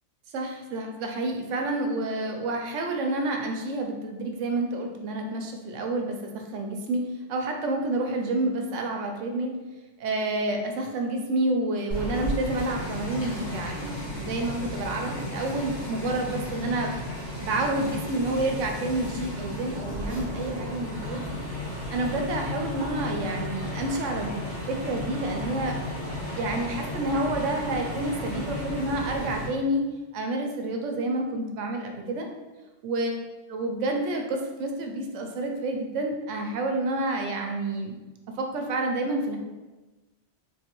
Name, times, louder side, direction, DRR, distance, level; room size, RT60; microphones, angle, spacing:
voice 1, 0.3-7.0 7.3-9.6 10.0-16.9 17.4-21.4 21.9-25.8 26.3-29.8 30.1-32.3 32.8-33.2 33.5-37.9 38.4-39.4, right 2 dB, 85° right, 2 dB, 1.0 m, -29 dB
sound 1, 11.9-29.5, left 1 dB, 65° left, 1.9 m, -34 dB
3.6 x 3.1 x 2.9 m, 1.1 s
omnidirectional pair, 1.2 m